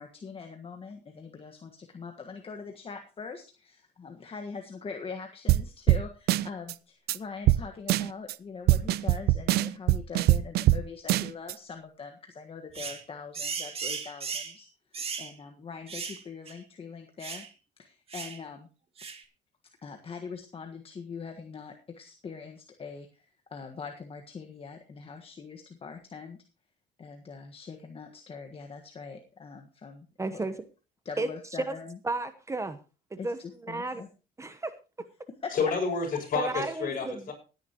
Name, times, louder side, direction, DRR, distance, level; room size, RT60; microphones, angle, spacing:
voice 1, 0.0-14.7 15.0-17.4 17.8-18.7 19.8-26.4 27.0-30.1 30.3-30.4 31.0-32.0 33.2-34.1 35.3-35.5, left 5 dB, 35° left, 4 dB, 1.5 m, -42 dB
sound 1, 5.5-5.6 5.9-6.0 6.3-6.7 7.1-7.2 7.5-7.6 7.9-8.3 8.7-10.8 11.1-11.5, right 15 dB, 70° right, 0.6 m, -22 dB
sound 2, 12.7-13.0 13.3-14.6 14.9-15.3 15.9-16.2 16.5-16.6 17.2-17.5 18.1-18.4 19.0-19.2, right 5 dB, 35° right, 2.1 m, -36 dB
voice 2, 30.2-30.5 31.2-31.3 31.7-31.8 32.0-32.8 33.1-34.0 34.4-34.7 36.3-37.3, right 2 dB, 15° right, 11 dB, 1.0 m, -33 dB
voice 3, 35.5-37.3, left 5 dB, 55° left, 1 dB, 6.6 m, -29 dB
17.5 x 10.0 x 3.0 m, 0.32 s
cardioid pair, 110°, 17 cm